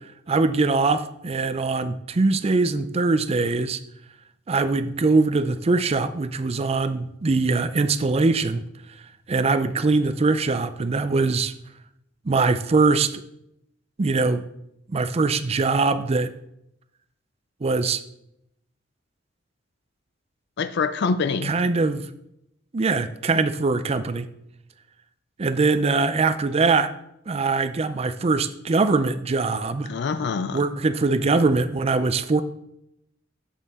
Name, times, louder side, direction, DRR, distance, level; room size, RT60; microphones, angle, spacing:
voice 1, 0.3-3.8 4.5-8.6 9.3-11.5 12.2-13.2 14.0-14.4 14.9-16.3 17.6-18.0 21.4-22.1 22.7-24.3 25.4-26.9 27.3-29.9 30.5-32.4, right 3 dB, 35° right, 11 dB, 0.4 m, -22 dB
voice 2, 20.6-21.5 29.9-30.6, left 5 dB, 60° left, 12 dB, 0.4 m, -25 dB
7.5 x 6.7 x 3.6 m, 0.79 s
head